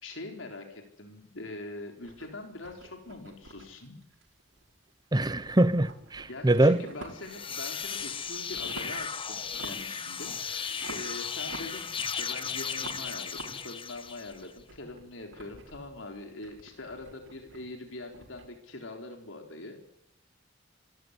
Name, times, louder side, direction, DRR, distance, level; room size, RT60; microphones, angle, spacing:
voice 1, 0.0-4.0 6.3-19.8, left 2 dB, 85° left, 4.0 m, -43 dB
sound 1, 2.0-4.9 5.2-7.4 7.8-9.1 9.4-10.0 10.3-12.3 12.7-18.5, right 2 dB, 90° right, 5.9 m, -48 dB
voice 2, 5.1-6.8, right 1 dB, 20° right, 0.8 m, -23 dB
sound 2, 7.1-14.5, left 6 dB, 25° left, 1.2 m, -36 dB
25.5 x 15.0 x 10.0 m
head